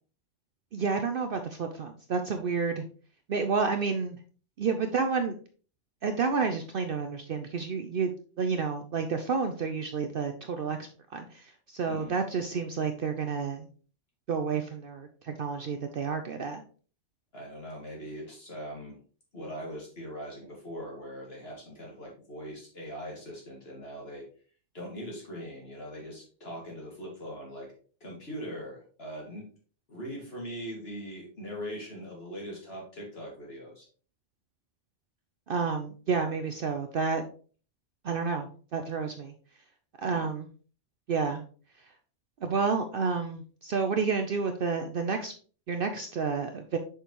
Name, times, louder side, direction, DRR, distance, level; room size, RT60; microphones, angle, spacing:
voice 1, 0.7-2.8 3.3-4.2 4.6-5.4 6.0-13.7 14.3-16.6 35.5-37.3 38.0-39.3 40.0-40.5 41.1-41.4 42.4-45.3 45.7-46.8, right 5 dB, 60° right, 6 dB, 0.7 m, -30 dB
voice 2, 17.3-19.0 19.3-24.3 24.7-27.7 28.0-29.5 29.9-33.9 40.0-40.3, equal, 55° left, -3 dB, 2.1 m, -41 dB
6.5 x 5.2 x 2.9 m, 0.41 s
omnidirectional pair, 1.2 m